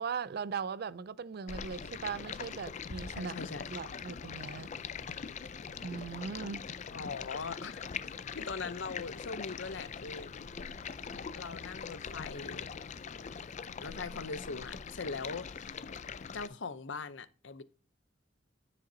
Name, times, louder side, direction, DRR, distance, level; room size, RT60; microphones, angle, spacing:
voice 1, 0.0-3.3 3.7-4.7 5.8-6.7, right 6 dB, 55° right, 0.4 m, -39 dB
Stream, 1.5-16.5, left 6 dB, 40° left, 0.4 m, -42 dB
voice 2, 3.2-3.7 6.9-7.8 8.3-10.3 11.4-12.7 13.8-15.8 16.3-17.6, left 4 dB, 75° left, 0.8 m, -41 dB
10.0 x 6.5 x 2.8 m
head